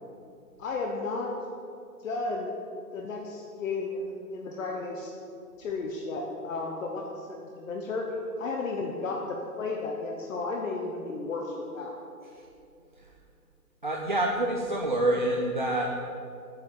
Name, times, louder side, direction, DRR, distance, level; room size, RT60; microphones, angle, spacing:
voice 1, 0.6-1.3 2.0-2.5 2.9-5.1 5.6-11.9, left 3 dB, 55° left, 0 dB, 1.1 m, -33 dB
voice 2, 13.8-16.0, right 1 dB, 35° right, -1 dB, 0.4 m, -27 dB
8.2 x 5.7 x 6.6 m, 2.5 s
hypercardioid pair, 150°, 47 cm